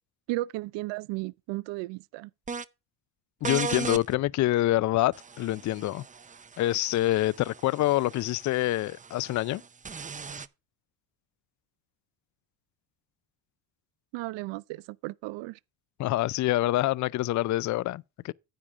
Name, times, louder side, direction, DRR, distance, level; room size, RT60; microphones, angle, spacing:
voice 1, 0.3-2.3 14.1-15.6, right 19 dB, 70° right, 0.6 m, -34 dB
sound 1, 2.5-2.6 3.4-4.0 5.1-10.5, right 5 dB, 15° right, 0.5 m, -38 dB
voice 2, 3.4-6.0 6.6-9.6 16.0-18.3, left 16 dB, 40° left, 0.4 m, -26 dB
10.0 x 8.6 x 3.6 m
supercardioid pair, 90°, 45 cm